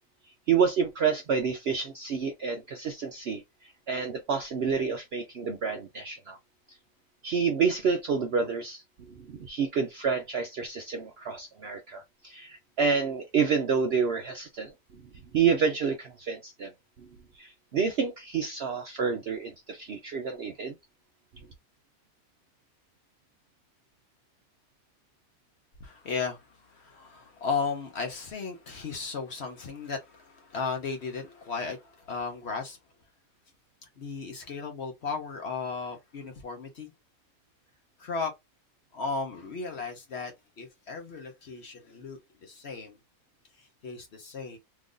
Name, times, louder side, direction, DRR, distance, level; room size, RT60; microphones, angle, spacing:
voice 1, 0.5-6.4 7.2-8.8 9.3-14.7 15.3-16.7 17.4-20.7, right 6 dB, 65° right, 0.6 m, -28 dB
voice 2, 25.8-32.8 33.8-36.9 38.0-38.3 38.9-43.0 43.6-44.6, left 5 dB, 55° left, 0.9 m, -35 dB
3.1 x 2.5 x 3.6 m
omnidirectional pair, 1.6 m